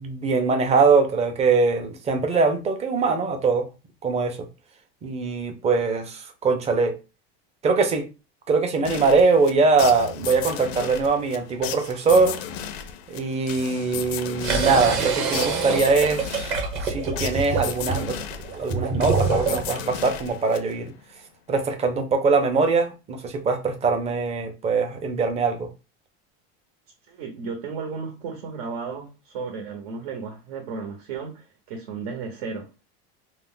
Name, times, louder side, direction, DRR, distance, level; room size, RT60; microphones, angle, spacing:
voice 1, 0.0-3.7 4.0-4.4 5.0-7.0 7.6-8.1 8.5-12.4 13.1-16.6 16.8-18.2 18.5-20.9 21.5-25.7, right 4 dB, 20° right, 0.5 m, -22 dB
sound 1, 8.9-21.0, left 8 dB, 85° left, 0.5 m, -35 dB
sound 2, 14.4-19.8, right 4 dB, 40° right, 0.8 m, -26 dB
voice 2, 27.1-32.7, right 5 dB, 85° right, 0.9 m, -34 dB
2.4 x 2.0 x 3.6 m
supercardioid pair, 140°, 31 cm